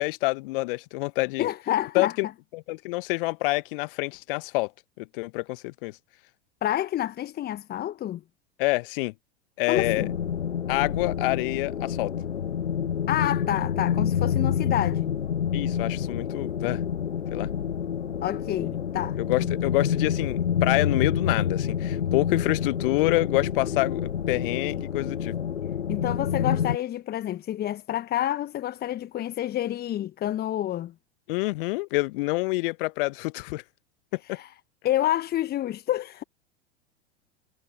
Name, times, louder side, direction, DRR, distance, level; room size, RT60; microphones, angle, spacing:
voice 1, 0.0-1.5 1.9-2.3 2.5-4.7 5.0-6.0 8.6-9.1 9.6-10.1 10.7-12.1 15.5-16.8 17.3-17.5 19.2-25.3 31.3-33.6 34.1-34.4, left 24 dB, 50° left, 1.2 m, -27 dB
voice 2, 1.4-2.1 6.6-8.2 9.7-10.1 13.1-15.1 18.2-19.2 25.9-30.9 34.3-34.5 34.8-36.2, left 12 dB, 30° left, 1.2 m, -28 dB
sound 1, 9.7-26.8, left 8 dB, 90° left, 0.5 m, -28 dB
figure-of-eight pair, 85°, 34 cm